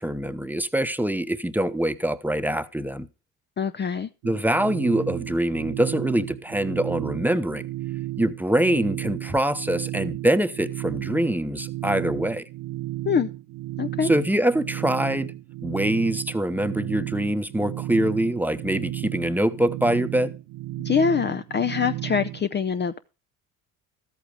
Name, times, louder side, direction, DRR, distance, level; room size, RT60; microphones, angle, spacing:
voice 1, 0.0-3.1 4.2-7.6 8.2-12.5 14.0-15.3 15.6-20.3, right 1 dB, 5° right, 0.9 m, -24 dB
voice 2, 3.6-4.1 13.0-13.3 13.8-14.1 20.8-23.0, left 6 dB, 30° left, 0.6 m, -24 dB
sound 1, 4.2-22.4, right 16 dB, 70° right, 0.7 m, -33 dB
13.5 x 8.5 x 4.9 m
supercardioid pair, 65°, 37 cm